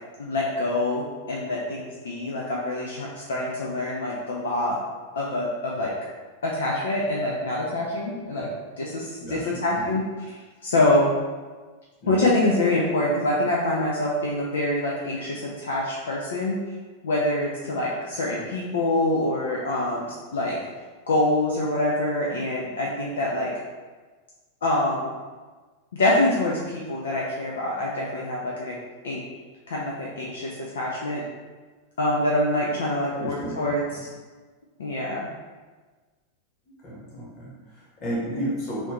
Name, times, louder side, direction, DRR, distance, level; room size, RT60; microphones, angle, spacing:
voice 1, 0.2-4.8 5.2-5.9 6.4-8.5 8.8-10.0 10.6-11.1 12.1-16.6 17.0-20.6 21.1-23.5 24.6-25.1 25.9-28.8 29.0-29.2 29.7-31.2 32.0-33.8 34.8-35.2, left 1 dB, 65° left, -4 dB, 0.5 m, -25 dB
voice 2, 9.2-10.0 12.0-12.2 33.1-33.7 36.8-38.9, right 1 dB, 30° left, -6 dB, 1.3 m, -33 dB
3.1 x 2.6 x 3.1 m, 1.3 s
figure-of-eight pair, 90°, 0 cm